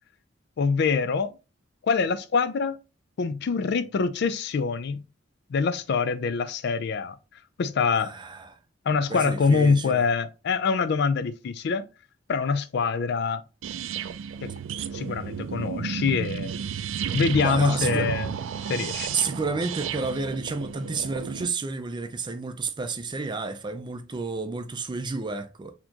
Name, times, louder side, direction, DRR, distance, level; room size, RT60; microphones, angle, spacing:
voice 1, 0.6-1.3 1.8-2.8 3.2-5.0 5.5-7.2 7.6-8.1 8.9-11.9 12.3-13.4 14.4-14.5 14.9-16.5 17.1-18.3 18.7-19.1, left 5 dB, 60° left, 0.4 m, -24 dB
voice 2, 8.0-8.6 9.1-10.0 17.4-18.1 19.1-25.7, right 4 dB, 25° right, 0.4 m, -31 dB
sound 1, 13.6-21.5, right 7 dB, 85° right, 0.3 m, -33 dB
4.1 x 2.9 x 2.8 m
head